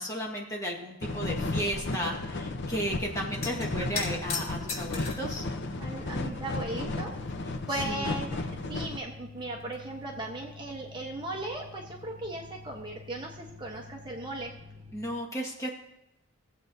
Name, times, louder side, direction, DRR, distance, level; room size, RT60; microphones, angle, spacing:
voice 1, 0.0-5.5 7.8-8.1 14.9-15.7, equal, 15° left, -2 dB, 1.6 m, -34 dB
sound 1, 1.0-9.0, left 2 dB, 55° left, 0.7 m, -34 dB
sound 2, 1.7-15.1, left 3 dB, 75° right, 0.9 m, -49 dB
sound 3, 3.3-5.3 6.2-7.0 7.3-7.4 8.7-8.8 9.1-10.1 13.7-13.9 14.2-14.4, left 5 dB, 75° left, 4.0 m, -38 dB
voice 2, 5.8-7.1 7.4-14.5, right 2 dB, 25° right, 0 dB, 1.0 m, -37 dB
19.0 x 7.7 x 2.7 m, 0.90 s
head